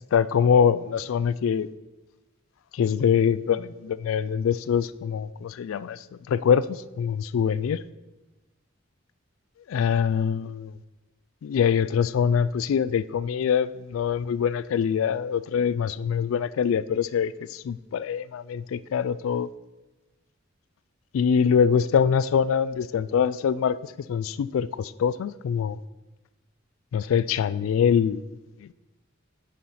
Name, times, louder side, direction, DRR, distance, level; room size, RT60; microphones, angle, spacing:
voice 1, 0.1-1.7 2.7-6.0 6.3-7.8 9.7-10.7 11.4-19.5 21.1-25.8 26.9-28.2 28.6-28.7, left 7 dB, 85° left, 0.3 m, -24 dB
10.5 x 5.7 x 4.1 m
head